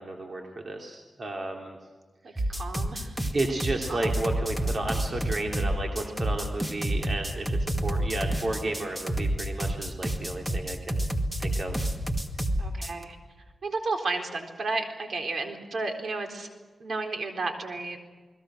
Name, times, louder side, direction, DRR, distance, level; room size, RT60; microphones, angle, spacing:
voice 1, 0.0-1.8 2.3-2.5 3.3-11.0 11.4-11.8, right 2 dB, 50° right, 1 dB, 2.9 m, -32 dB
voice 2, 2.2-3.2 3.9-4.2 12.6-13.2 13.6-16.5 16.8-18.0, right 3 dB, 70° right, 3 dB, 4.0 m, -32 dB
sound 1, 2.4-13.0, right 1 dB, 10° right, 2.1 m, -29 dB
29.5 x 20.5 x 6.3 m, 1.4 s
wide cardioid pair, 100°, 0 cm